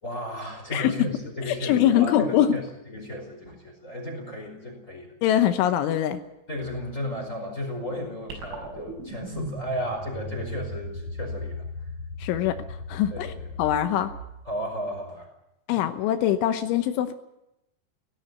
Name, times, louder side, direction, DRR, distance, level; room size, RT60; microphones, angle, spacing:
voice 1, 0.0-5.1 6.5-11.6 13.1-13.5 14.4-15.3 15.7-15.9, equal, 15° left, 2 dB, 4.8 m, -34 dB
voice 2, 0.7-1.1 1.5-2.6 5.2-6.2 12.2-12.6 12.9-13.3 13.6-14.1 15.7-17.1, left 11 dB, 80° left, 8 dB, 3.4 m, -23 dB
sound 1, 8.3-14.8, left 1 dB, 80° right, 8.8 m, -37 dB
17.5 x 17.0 x 9.4 m, 0.88 s
omnidirectional pair, 5.6 m